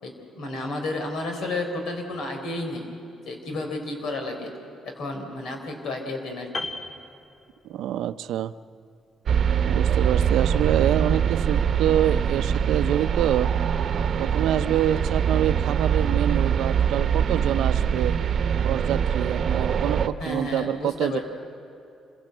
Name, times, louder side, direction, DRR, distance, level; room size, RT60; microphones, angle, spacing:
voice 1, 0.0-2.9 3.3-4.5 4.8-6.7 20.2-21.2, left 2 dB, 75° left, 4 dB, 4.1 m, -32 dB
Piano, 6.5-8.0 8.3-8.5, left 2 dB, 45° left, 1.6 m, -36 dB
voice 2, 7.6-8.5 9.7-13.5 14.2-18.2 18.6-21.2, right 11 dB, 80° right, 13 dB, 0.5 m, -26 dB
sound 1, 9.3-20.1, right 8 dB, 55° right, 0.9 m, -23 dB
26.0 x 16.5 x 7.9 m, 2.6 s
cardioid pair, 90°, 0 cm